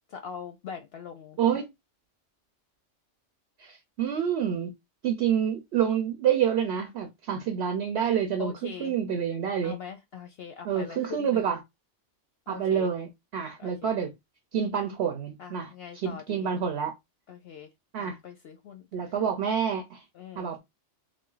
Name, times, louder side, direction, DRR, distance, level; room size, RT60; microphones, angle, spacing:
voice 1, 0.1-1.6 8.4-8.9 9.6-11.5 12.5-12.9 13.6-13.9 15.4-16.5 17.3-17.7 18.0-18.8 20.1-20.5, left 7 dB, 65° left, 0.8 m, -42 dB
voice 2, 3.6-4.7 5.0-9.8 10.6-11.6 12.5-14.1 14.5-16.9 17.9-18.2 18.9-20.0 20.4-20.6, right 8 dB, 65° right, 0.9 m, -28 dB
3.4 x 2.5 x 3.8 m
omnidirectional pair, 1.2 m